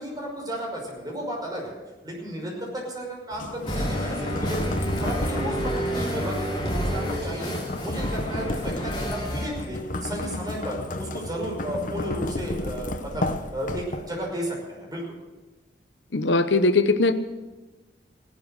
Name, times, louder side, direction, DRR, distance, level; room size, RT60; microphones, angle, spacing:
voice 1, 0.0-1.7 2.0-4.7 5.0-15.0, right 1 dB, 20° right, -2 dB, 5.8 m, -33 dB
sound 1, 3.3-14.3, left 2 dB, 45° left, 0.9 m, -33 dB
sound 2, 3.6-9.5, equal, 30° left, 4.5 m, -29 dB
voice 2, 16.1-17.1, left 3 dB, 80° left, 10 dB, 0.9 m, -20 dB
17.0 x 12.0 x 6.5 m, 1.2 s
head